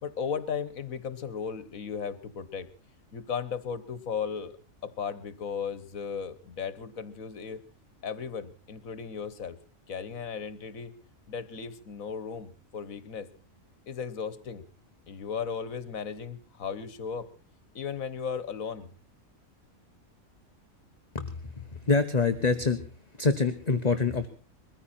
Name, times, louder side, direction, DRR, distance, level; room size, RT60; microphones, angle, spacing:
voice 1, 0.0-2.7 3.1-4.5 4.8-7.6 8.0-9.6 9.9-10.9 11.3-13.3 13.9-14.6 15.1-17.3 17.7-18.9, left 6 dB, 75° left, 15 dB, 1.7 m, -36 dB
voice 2, 21.1-22.9 23.2-24.3, left 4 dB, 30° left, 7 dB, 1.1 m, -26 dB
22.0 x 15.0 x 4.3 m, 0.37 s
omnidirectional pair, 1.4 m